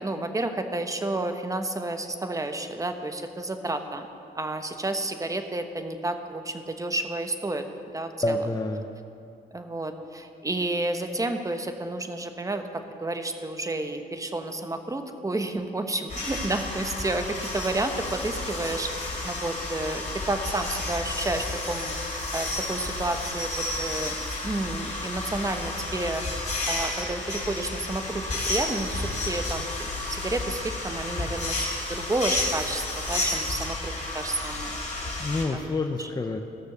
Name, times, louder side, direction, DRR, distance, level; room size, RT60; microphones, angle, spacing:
voice 1, 0.0-4.1 4.3-7.6 7.9-8.4 9.5-12.6 13.0-21.9 22.3-24.2 24.4-26.2 26.7-31.6 31.9-34.7 35.5-35.6 36.0-36.1, right 2 dB, 20° right, 7 dB, 1.1 m, -31 dB
voice 2, 8.2-8.8 35.2-36.4, left 2 dB, 20° left, 4 dB, 0.7 m, -27 dB
sound 1, 16.1-35.4, left 2 dB, 40° left, 3.7 m, -31 dB
15.5 x 6.6 x 6.7 m, 2.5 s
cardioid pair, 80°, 18 cm